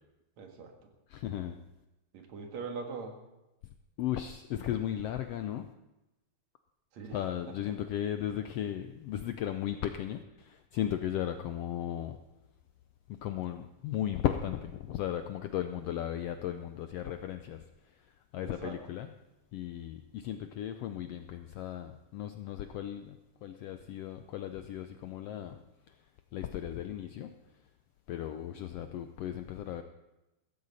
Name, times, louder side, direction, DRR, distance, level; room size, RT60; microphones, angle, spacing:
voice 1, 0.4-0.7 2.1-3.2 6.9-7.2 7.5-7.6 18.4-18.8, right 5 dB, 70° right, 3 dB, 2.9 m, -41 dB
voice 2, 1.1-1.6 4.0-5.7 7.1-12.2 13.1-17.6 18.3-19.1 19.5-25.6 26.3-27.3 28.1-29.8, left 11 dB, 75° left, 8 dB, 1.4 m, -36 dB
16.0 x 14.0 x 4.2 m, 0.98 s
omnidirectional pair, 3.4 m